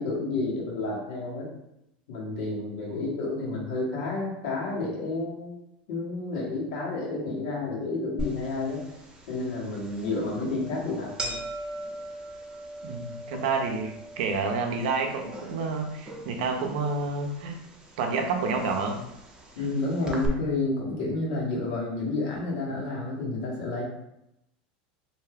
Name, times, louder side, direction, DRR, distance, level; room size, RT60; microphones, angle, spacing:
voice 1, 0.0-1.5 2.1-5.5 5.9-8.9 9.3-11.4 13.3-13.4 19.5-23.8, left 2 dB, 75° left, -3 dB, 1.2 m, -30 dB
sound 1, 8.2-20.3, right 1 dB, 20° right, 0.6 m, -41 dB
voice 2, 12.8-17.6 18.0-19.1 19.6-19.8, right 4 dB, 70° right, 4 dB, 0.5 m, -29 dB
2.6 x 2.2 x 3.4 m, 0.83 s
supercardioid pair, 125°, 5 cm